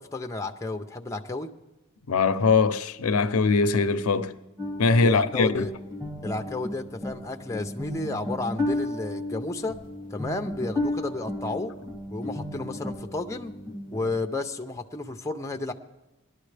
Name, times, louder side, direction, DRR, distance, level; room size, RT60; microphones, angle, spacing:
voice 1, 0.0-1.5 4.9-5.7 6.2-9.8 10.1-11.7 12.1-13.5 13.9-15.7, left 2 dB, 15° left, 0.6 m, -32 dB
voice 2, 2.1-4.3 4.8-5.7, left 4 dB, 90° left, 0.6 m, -22 dB
sound 1, 4.6-14.2, left 1 dB, 20° right, 3.0 m, -34 dB
19.5 x 11.5 x 3.3 m
head